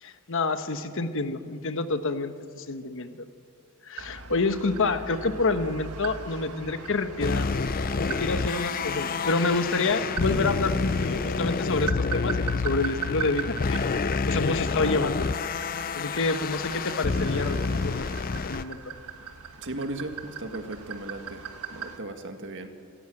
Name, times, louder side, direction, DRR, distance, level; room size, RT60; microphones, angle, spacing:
voice 1, 0.0-3.2 3.8-7.5 7.9-15.3 15.9-18.8, left 3 dB, 60° left, 9 dB, 1.2 m, -28 dB
sound 1, 4.0-22.0, right 5 dB, 85° right, 1.6 m, -40 dB
sound 2, 7.2-18.6, left 4 dB, 40° left, 0.5 m, -28 dB
voice 2, 19.6-20.1 20.4-21.4 21.7-22.7, right 2 dB, 55° right, 6 dB, 1.8 m, -36 dB
27.0 x 13.5 x 7.8 m, 2.3 s
head